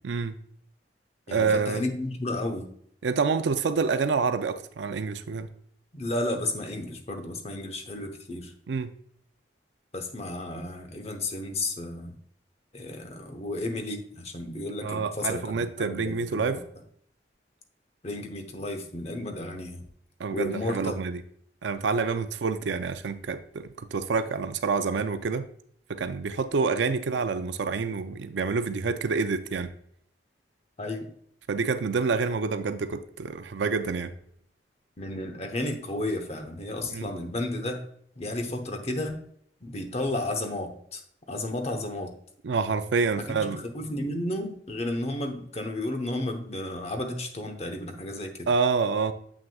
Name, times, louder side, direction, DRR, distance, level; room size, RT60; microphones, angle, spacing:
voice 1, 0.0-0.3 1.3-1.8 3.0-5.5 8.7-8.9 14.8-16.6 20.2-21.2 21.6-25.5 25.9-29.7 31.5-34.1 36.9-37.1 42.4-43.6 48.5-49.1, right 4 dB, 85° right, 10 dB, 0.4 m, -27 dB
voice 2, 1.3-2.7 5.9-8.5 9.9-12.2 12.7-16.6 18.0-19.8 20.3-21.0 30.8-31.1 35.0-37.8 38.2-39.2 39.6-41.0 41.3-42.1 43.2-48.5, left 1 dB, 35° left, 4 dB, 0.9 m, -33 dB
7.3 x 6.2 x 2.3 m, 0.64 s
head